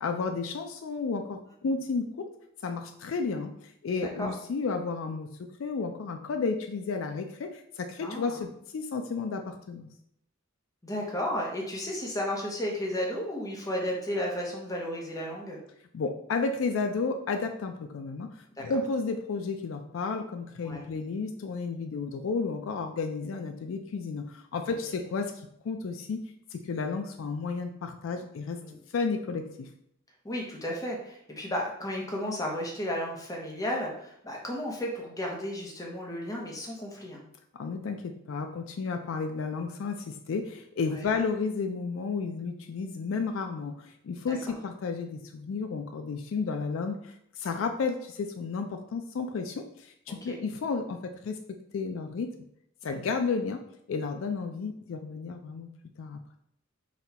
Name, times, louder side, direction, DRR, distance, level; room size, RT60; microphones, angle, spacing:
voice 1, 0.0-2.3 2.6-5.3 5.6-9.9 15.9-18.3 18.6-25.3 25.6-26.2 26.5-28.6 28.9-29.7 37.5-51.4 51.7-52.3 52.8-53.6 53.9-55.7 56.0-56.2, left 4 dB, 65° left, 6 dB, 0.3 m, -32 dB
voice 2, 8.0-8.4 10.8-15.6 18.6-18.7 20.6-20.9 24.7-24.8 28.6-28.8 30.2-37.2 40.9-41.1 44.2-44.4 50.2-50.4 52.8-53.0, left 1 dB, 15° left, -2 dB, 0.8 m, -33 dB
4.1 x 2.3 x 4.1 m, 0.72 s
head